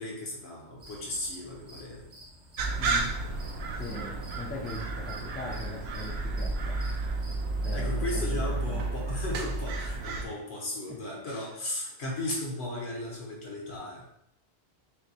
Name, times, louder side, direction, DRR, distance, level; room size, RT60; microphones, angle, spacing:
voice 1, 0.0-2.1 7.6-14.0, left 1 dB, 65° left, -3 dB, 1.4 m, -36 dB
sound 1, 0.8-8.4, right 1 dB, 85° right, 2.1 m, -51 dB
sound 2, 2.6-10.2, right 3 dB, 70° right, 0.8 m, -32 dB
voice 2, 2.8-3.2 3.7-6.8 7.6-8.9 10.9-11.5, left 2 dB, 15° left, -1 dB, 0.3 m, -41 dB
5.7 x 2.2 x 2.9 m, 0.74 s
omnidirectional pair, 1.2 m